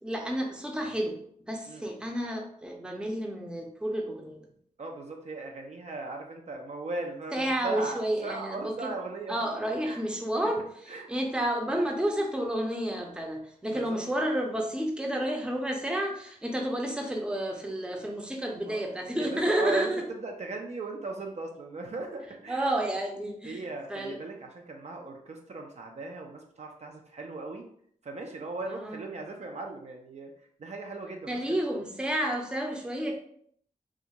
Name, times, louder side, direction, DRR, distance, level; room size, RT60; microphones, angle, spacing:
voice 1, 0.0-4.5 7.3-8.9 9.3-10.6 11.1-20.0 22.5-23.6 23.9-24.2 28.7-29.0 31.3-33.1, right 1 dB, 5° right, 1 dB, 0.6 m, -30 dB
voice 2, 4.8-9.5 9.8-10.0 10.9-11.1 13.7-14.0 18.7-18.8 19.1-22.6 23.4-27.6 28.0-31.6, right 3 dB, 50° right, 2 dB, 0.4 m, -38 dB
2.5 x 2.4 x 2.8 m, 0.64 s
cardioid pair, 55°, 15 cm